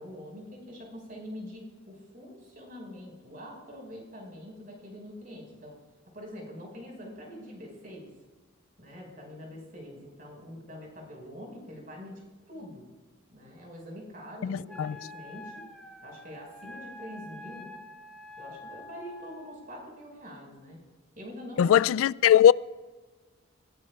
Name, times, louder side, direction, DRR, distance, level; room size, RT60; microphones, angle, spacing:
voice 1, 0.0-5.8 6.1-8.1 8.8-12.2 12.5-12.9 13.3-15.5 16.0-17.7 18.4-20.8 21.2-22.1, equal, 45° right, 5.3 m, -44 dB
voice 2, 14.4-14.9 21.6-22.5, left 10 dB, 90° left, 0.3 m, -20 dB
Wind instrument woodwind instrument, 14.7-19.6, left 2 dB, 5° left, 1.2 m, -46 dB
22.0 x 16.5 x 2.4 m
head